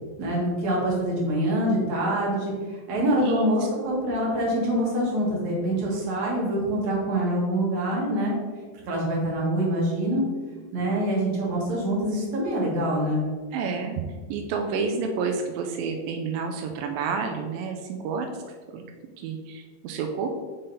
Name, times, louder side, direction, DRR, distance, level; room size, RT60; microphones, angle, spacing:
voice 1, 0.2-8.4 8.9-10.2 10.7-13.3, right 1 dB, 55° right, -4 dB, 2.6 m, -25 dB
voice 2, 13.5-14.0 14.3-18.3 18.7-18.8 19.2-20.3, right 5 dB, 85° right, 4 dB, 2.0 m, -29 dB
5.8 x 5.1 x 4.0 m, 1.5 s
omnidirectional pair, 4.6 m